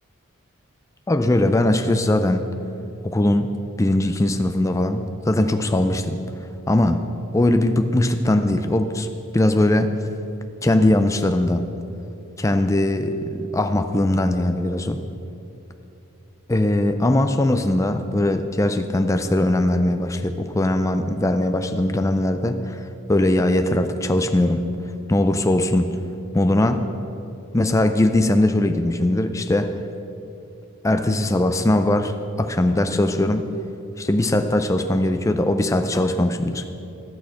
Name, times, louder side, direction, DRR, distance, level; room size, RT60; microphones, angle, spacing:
voice 1, 1.1-2.4 3.0-3.5 3.8-6.2 6.7-9.1 9.3-9.9 10.6-11.7 12.4-15.0 16.5-22.8 23.1-24.7 25.1-26.0 26.3-26.9 27.5-29.8 30.8-33.5 34.0-36.6, left 1 dB, 15° left, 8 dB, 0.4 m, -20 dB
13.0 x 6.4 x 5.6 m, 2.8 s
head